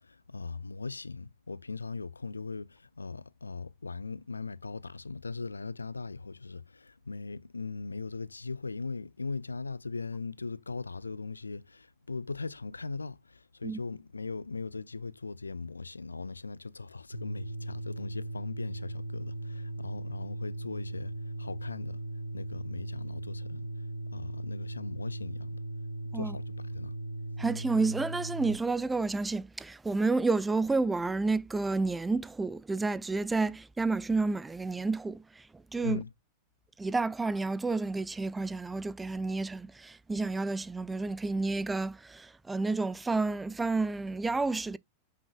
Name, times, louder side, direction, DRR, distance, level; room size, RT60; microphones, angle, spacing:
voice 1, 0.0-22.0 22.3-23.7 24.1-25.6 26.1-27.0 35.8-36.1, left 4 dB, 80° left, 0.3 m, -39 dB
sound 1, 17.1-28.5, right 1 dB, 85° right, 1.4 m, -38 dB
voice 2, 27.4-35.5 35.7-36.0 36.8-44.8, right 3 dB, 10° right, 0.4 m, -30 dB
9.0 x 5.7 x 2.2 m
figure-of-eight pair, 90°, 0 cm